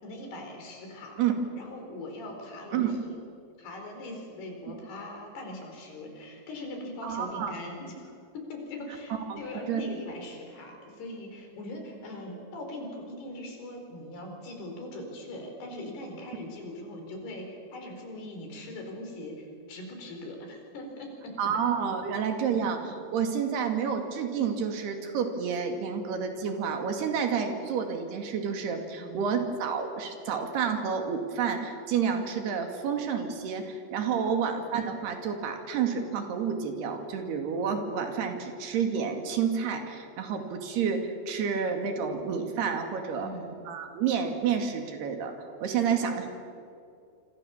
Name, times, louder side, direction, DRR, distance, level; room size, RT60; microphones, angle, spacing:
voice 1, 0.0-1.2 1.6-3.2 3.6-21.3 22.5-22.6 29.0-29.2 34.3-34.4 43.1-43.5 45.9-46.0, left 1 dB, 90° left, 3 dB, 6.6 m, -41 dB
voice 2, 7.0-7.5 9.3-9.4 9.7-9.8 21.4-43.3 43.7-45.3 45.6-46.4, right 6 dB, 90° right, 5 dB, 4.5 m, -29 dB
27.0 x 26.0 x 7.3 m, 2.5 s
omnidirectional pair, 4.5 m